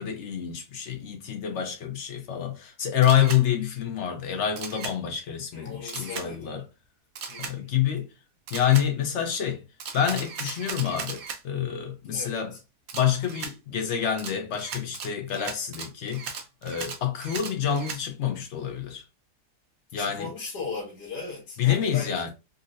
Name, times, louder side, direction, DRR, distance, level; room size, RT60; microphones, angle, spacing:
voice 1, 0.0-6.6 7.4-8.1 8.5-9.6 9.9-12.5 12.9-19.0 19.9-20.3 21.6-22.3, left 9 dB, 60° left, 0.8 m, -27 dB
Camera, 3.0-3.4 4.6-4.9 5.9-6.3 7.1-7.5 8.5-8.9 9.8-11.4 12.9-13.5 14.2-18.0, right 6 dB, 70° right, 1.0 m, -37 dB
voice 2, 5.5-6.5 7.3-7.7 12.1-12.6 19.9-22.3, left 4 dB, 80° left, 1.4 m, -38 dB
3.8 x 2.1 x 2.5 m
omnidirectional pair, 1.7 m